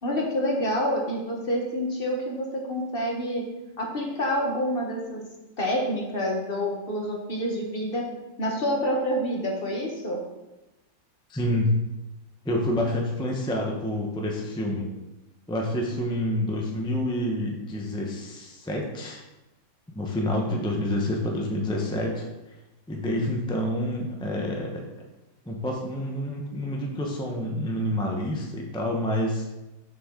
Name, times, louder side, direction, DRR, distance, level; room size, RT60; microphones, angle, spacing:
voice 1, 0.0-3.4 3.8-5.2 5.6-8.0 8.4-10.2, equal, 35° left, 0 dB, 1.1 m, -27 dB
voice 2, 11.3-11.7 12.4-14.9 15.5-19.2 19.9-22.6 22.9-24.9 25.4-29.4, left 1 dB, 5° left, 0 dB, 0.3 m, -28 dB
7.1 x 6.3 x 3.7 m, 1.0 s
omnidirectional pair, 2.0 m